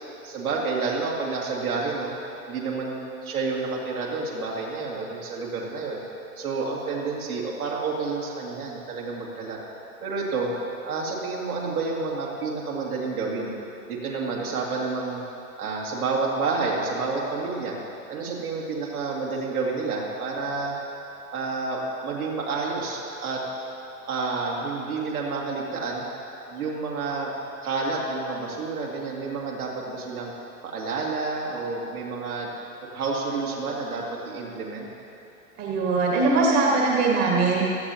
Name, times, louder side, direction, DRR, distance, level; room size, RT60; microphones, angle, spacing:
voice 1, 0.2-2.1 2.4-6.0 6.4-9.6 10.0-10.5 10.8-13.5 13.9-15.2 15.6-17.8 18.1-20.7 21.3-23.4 24.1-26.0 26.5-27.3 27.6-30.3 30.6-32.5 32.9-34.9, right 4 dB, 75° right, -4 dB, 2.7 m, -29 dB
voice 2, 35.6-37.6, right 3 dB, 35° right, -2 dB, 1.7 m, -21 dB
16.5 x 12.5 x 2.9 m, 2.8 s
figure-of-eight pair, 100°, 44 cm